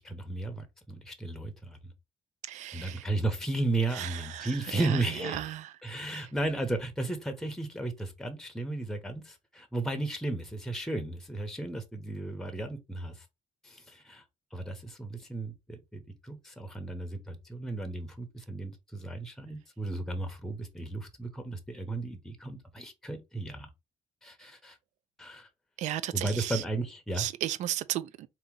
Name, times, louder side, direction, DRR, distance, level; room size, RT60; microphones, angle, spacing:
voice 1, 0.0-1.9 2.7-5.5 5.8-13.2 13.6-14.2 14.5-23.7 24.2-24.8 25.2-25.5 26.1-27.3, right 2 dB, 5° left, 0.9 m, -34 dB
voice 2, 2.5-3.0 3.9-5.7 6.1-6.2 25.8-26.6 27.2-28.3, right 12 dB, 85° right, 0.5 m, -35 dB
4.0 x 3.0 x 3.7 m
cardioid pair, 105°, 12 cm